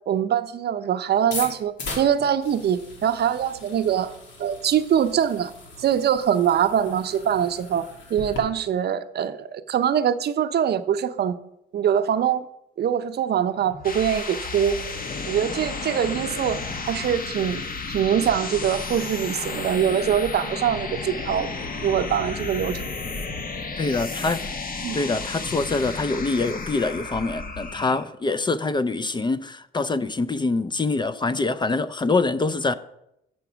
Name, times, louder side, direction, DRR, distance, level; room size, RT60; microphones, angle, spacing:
voice 1, 0.1-5.5 5.8-11.3 11.7-12.5 12.8-14.7 15.3-16.6 16.9-17.6 17.9-21.5 21.8-22.8 24.8-25.0, right 9 dB, 55° right, 0.6 m, -23 dB
sound 1, 1.2-8.4, left 2 dB, 70° left, 2.5 m, -39 dB
sound 2, 13.6-28.1, left 4 dB, 45° left, 1.2 m, -32 dB
voice 2, 23.8-24.5 24.9-32.7, left 3 dB, 25° left, 0.4 m, -25 dB
7.8 x 5.8 x 6.1 m
cardioid pair, 90°, 20 cm